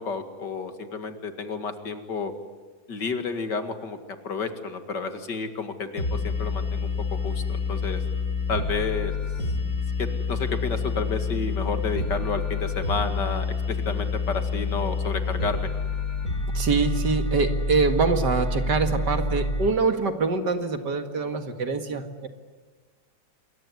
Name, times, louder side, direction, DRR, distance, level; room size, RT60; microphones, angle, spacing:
voice 1, 0.0-2.3 2.9-4.0 4.2-8.0 8.5-9.1 10.0-15.7, left 4 dB, 65° left, 8 dB, 2.7 m, -31 dB
sound 1, 6.0-19.7, left 3 dB, 50° left, 3.7 m, -28 dB
voice 2, 16.5-22.3, right 4 dB, 65° right, 7 dB, 2.5 m, -24 dB
28.0 x 22.0 x 9.6 m, 1.4 s
omnidirectional pair, 2.0 m